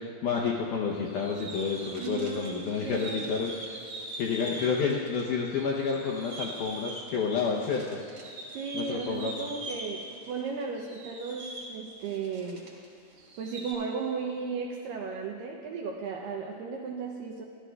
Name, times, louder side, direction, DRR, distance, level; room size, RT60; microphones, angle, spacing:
voice 1, 0.0-3.8 4.2-8.0 8.7-9.4, left 5 dB, 80° left, -2 dB, 1.8 m, -30 dB
sound 1, 1.1-5.2 5.5-12.9 13.1-13.7, right 1 dB, 45° right, 1.8 m, -42 dB
voice 2, 2.0-3.3 8.5-12.7 13.4-17.4, right 5 dB, 80° right, 0 dB, 2.1 m, -35 dB
16.0 x 12.5 x 2.3 m, 2.5 s
omnidirectional pair, 4.4 m